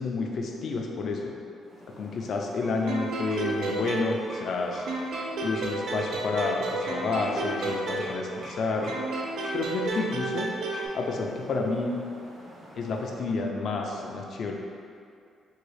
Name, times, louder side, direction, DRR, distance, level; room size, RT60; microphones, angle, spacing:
voice 1, 0.0-1.3 1.9-4.8 5.4-8.9 9.5-10.5 10.9-11.9 12.8-14.5, left 3 dB, 60° left, 1 dB, 0.4 m, -30 dB
sound 1, 1.6-13.4, equal, 45° right, 1.1 m, -46 dB
sound 2, 2.9-4.6 4.9-8.5 8.9-10.9, right 2 dB, 75° right, 0.4 m, -32 dB
3.6 x 2.3 x 3.3 m, 2.4 s
cardioid pair, 90°, 0 cm